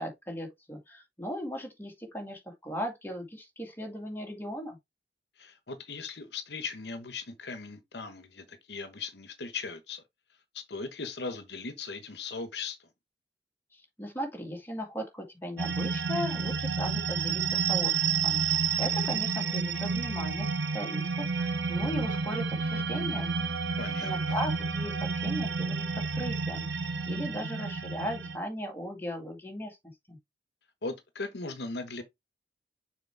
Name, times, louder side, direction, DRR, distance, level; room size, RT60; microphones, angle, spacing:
voice 1, 0.0-4.8 13.7-18.4 18.8-23.3 24.0-26.7 27.1-29.8 30.1-30.2, equal, 10° left, 2.1 m, -37 dB
voice 2, 5.4-10.0 10.5-12.9 23.8-24.4 30.8-32.0, left 4 dB, 70° left, 1.1 m, -38 dB
sound 1, 15.6-28.4, right 5 dB, 85° right, 1.0 m, -30 dB
6.7 x 4.5 x 3.5 m
head